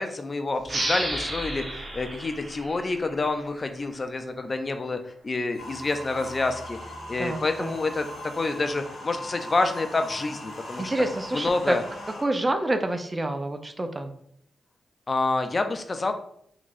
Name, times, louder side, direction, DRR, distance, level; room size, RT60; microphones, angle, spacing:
voice 1, 0.0-5.0 5.2-6.8 7.1-8.1 8.4-10.9 11.3-11.8 15.1-16.1, left 3 dB, 45° left, 7 dB, 0.4 m, -28 dB
sound 1, 0.6-3.9, right 1 dB, 45° right, 1.1 m, -33 dB
sound 2, 5.5-11.0, right 3 dB, 5° right, 1.0 m, -50 dB
sound 3, 5.6-12.2, left 1 dB, 80° left, 1.4 m, -40 dB
voice 2, 7.2-7.8 10.8-11.8 12.2-14.1, right 1 dB, 30° right, 7 dB, 0.5 m, -28 dB
3.8 x 3.0 x 2.6 m, 0.69 s
supercardioid pair, 40°, 0 cm